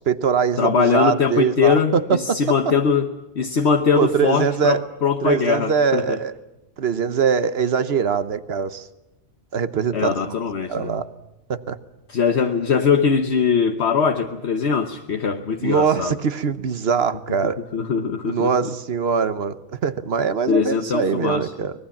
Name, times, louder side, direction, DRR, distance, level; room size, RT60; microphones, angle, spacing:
voice 1, 0.1-2.7 3.9-4.8 5.2-6.3 6.8-8.9 9.5-10.2 10.7-11.1 11.5-11.8 15.6-17.6 18.3-21.7, right 6 dB, 60° right, 13 dB, 1.2 m, -22 dB
voice 2, 0.6-6.2 9.9-10.9 12.1-16.2 17.4-18.7 20.5-21.5, left 6 dB, 65° left, 5 dB, 1.3 m, -21 dB
24.0 x 20.0 x 7.2 m, 1.0 s
omnidirectional pair, 1.2 m